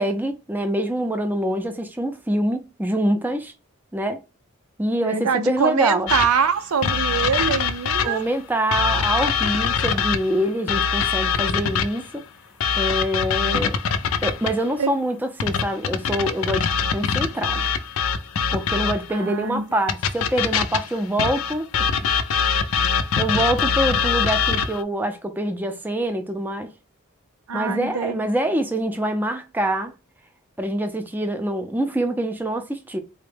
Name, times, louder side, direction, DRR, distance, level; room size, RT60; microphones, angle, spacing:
voice 1, 0.0-3.5 3.9-4.2 4.8-6.1 8.0-12.2 12.8-13.8 14.2-17.6 18.5-21.7 23.2-26.7 27.5-29.9 30.6-33.0, right 1 dB, 10° right, 0.4 m, -25 dB
voice 2, 5.0-8.2 14.8-15.0 19.1-19.6 27.5-28.3, right 6 dB, 90° right, 0.5 m, -24 dB
sound 1, 6.1-8.3 8.7-12.1 12.6-14.7 15.4-19.2 19.9-24.8, left 6 dB, 75° left, 0.4 m, -23 dB
3.8 x 2.1 x 3.3 m
head